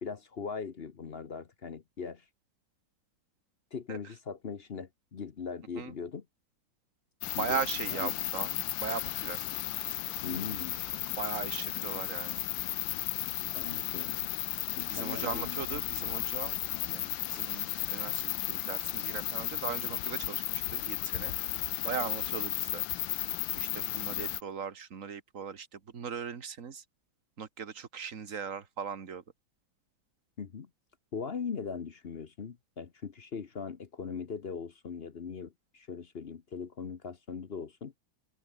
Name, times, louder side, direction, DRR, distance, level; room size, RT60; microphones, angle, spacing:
voice 1, 0.0-2.2 3.7-6.2 7.2-7.6 7.9-8.1 10.2-10.8 13.5-14.2 14.8-15.8 30.4-30.7 31.1-37.9, left 6 dB, 45° left, 0.8 m, -40 dB
sound 1, 7.2-24.4, left 15 dB, 75° left, 1.4 m, -34 dB
voice 2, 7.4-8.5 8.8-9.5 11.2-12.4 14.9-16.6 16.8-22.8 23.6-26.8 27.4-29.2, right 6 dB, 40° right, 1.8 m, -39 dB
open air
omnidirectional pair, 2.2 m